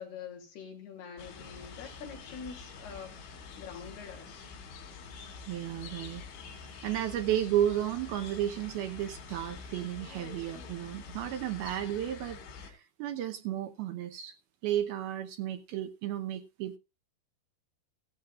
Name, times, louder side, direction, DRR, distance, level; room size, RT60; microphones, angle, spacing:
voice 1, 0.0-3.2 3.6-4.5, left 6 dB, 60° left, 4.9 m, -45 dB
sound 1, 1.2-12.7, left 5 dB, 85° left, 5.5 m, -46 dB
voice 2, 5.5-6.2 6.8-14.3 14.6-16.8, right 11 dB, 80° right, 2.3 m, -33 dB
15.5 x 14.0 x 2.5 m
omnidirectional pair, 5.3 m